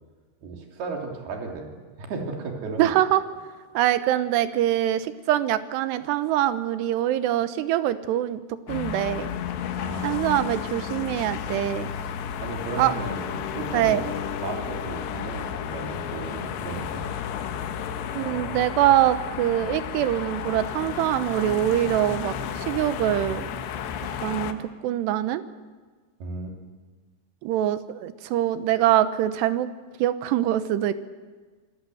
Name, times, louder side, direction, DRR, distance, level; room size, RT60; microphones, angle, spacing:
voice 1, 0.4-2.9 9.8-10.8 12.4-17.1 26.2-26.6, right 3 dB, 65° right, 1 dB, 5.1 m, -35 dB
voice 2, 2.8-3.2 3.7-9.3 10.0-11.9 12.8-12.9 13.7-14.0 18.1-23.4 24.2-25.4 27.4-29.7 30.0-30.9, right 12 dB, 80° right, 12 dB, 3.1 m, -24 dB
sound 1, 8.7-24.5, left 8 dB, 80° left, 3.4 m, -32 dB
27.5 x 19.0 x 8.0 m, 1.4 s
omnidirectional pair, 5.0 m